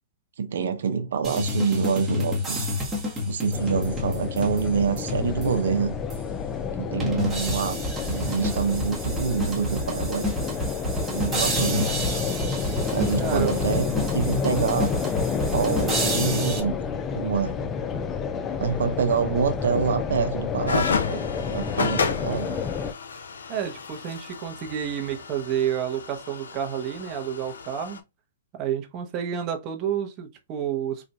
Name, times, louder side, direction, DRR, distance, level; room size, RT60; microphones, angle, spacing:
voice 1, 0.4-2.7 3.2-6.0 6.8-7.8 8.0-10.3 11.1-12.2 12.9-14.9 15.5-16.8 17.1-17.6 18.6-21.2 21.5-22.6, right 6 dB, 80° right, 0.7 m, -26 dB
sound 1, 1.2-5.7 6.1-6.2 7.0-16.6, equal, 10° right, 1.1 m, -29 dB
sound 2, 3.5-22.9, left 6 dB, 20° left, 0.4 m, -29 dB
voice 2, 13.2-13.5 23.5-28.0 28.5-31.1, right 9 dB, 35° right, 0.9 m, -30 dB
sound 3, 20.7-28.0, left 5 dB, 90° left, 0.5 m, -32 dB
4.1 x 2.5 x 2.2 m
hypercardioid pair, 140°, 0 cm